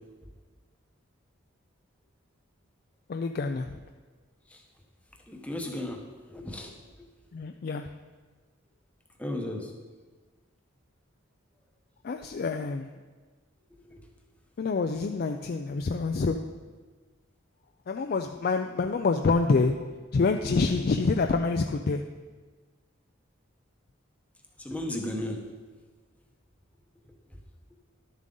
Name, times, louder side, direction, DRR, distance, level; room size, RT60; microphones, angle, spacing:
voice 1, 3.1-3.8 7.3-7.8 12.0-12.9 14.6-16.4 17.9-22.0, left 4 dB, 45° left, 5 dB, 0.3 m, -27 dB
voice 2, 5.3-7.1 9.2-9.7 13.7-14.1 24.6-25.4 27.3-27.4, left 1 dB, 5° left, 2 dB, 0.9 m, -36 dB
11.5 x 7.3 x 3.8 m, 1.4 s
head